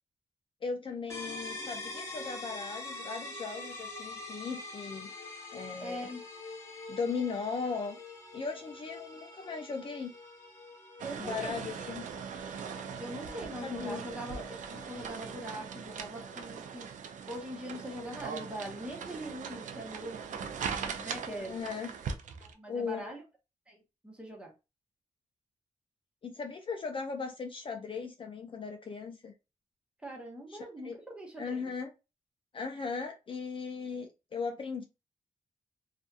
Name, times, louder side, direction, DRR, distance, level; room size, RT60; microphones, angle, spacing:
voice 1, 0.6-5.1 5.5-6.1 6.9-8.0 8.3-10.1 11.2-12.1 13.6-14.0 21.4-21.9 22.7-23.1 26.2-29.3 30.5-30.6 30.8-31.0 31.4-31.9 32.5-34.8, left 5 dB, 40° left, 0.4 m, -37 dB
sound 1, 1.1-16.7, left 2 dB, 20° left, 0.9 m, -46 dB
voice 2, 5.8-6.2 11.0-11.6 13.0-16.9 17.2-22.0 22.4-23.2 23.7-23.8 24.0-24.5 30.0-31.7, equal, 10° right, 0.9 m, -42 dB
sound 2, 11.0-22.5, right 6 dB, 75° right, 0.4 m, -40 dB
2.6 x 2.4 x 2.3 m
wide cardioid pair, 110°, 13 cm